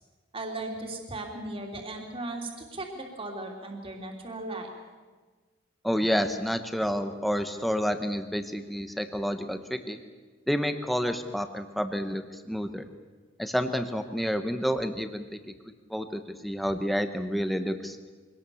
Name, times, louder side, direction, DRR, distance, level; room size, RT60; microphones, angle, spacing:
voice 1, 0.3-4.7, right 2 dB, 25° right, 1 dB, 3.0 m, -37 dB
voice 2, 5.8-10.0 10.5-12.8 13.4-15.4 15.9-18.0, equal, ahead, 8 dB, 1.0 m, -29 dB
24.0 x 18.5 x 7.0 m, 1.4 s
head